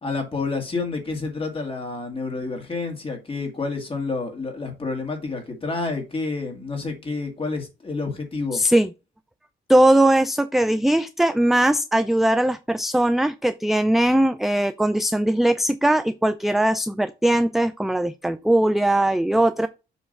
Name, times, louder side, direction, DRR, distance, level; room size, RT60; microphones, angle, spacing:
voice 1, 0.0-8.6, left 3 dB, 25° left, 2.1 m, -29 dB
voice 2, 8.5-8.9 9.7-19.7, right 1 dB, ahead, 0.3 m, -20 dB
7.1 x 3.1 x 5.3 m
cardioid pair, 90°, 20 cm